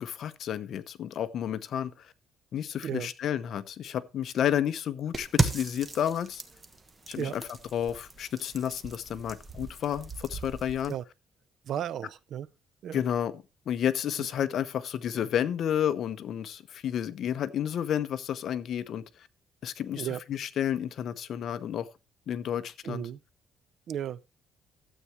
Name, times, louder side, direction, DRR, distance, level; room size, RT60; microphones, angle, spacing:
voice 1, 0.0-2.1 2.5-6.4 7.1-7.4 7.7-10.9 12.9-19.0 19.6-21.9 22.3-23.1, left 10 dB, 60° left, 0.8 m, -31 dB
sound 1, 5.1-10.9, right 2 dB, 20° right, 1.2 m, -35 dB
voice 2, 11.7-12.5 12.8-13.0 20.0-20.2 22.8-23.2 23.9-24.3, right 10 dB, 60° right, 0.5 m, -34 dB
12.5 x 8.3 x 3.2 m
cardioid pair, 130°, 0 cm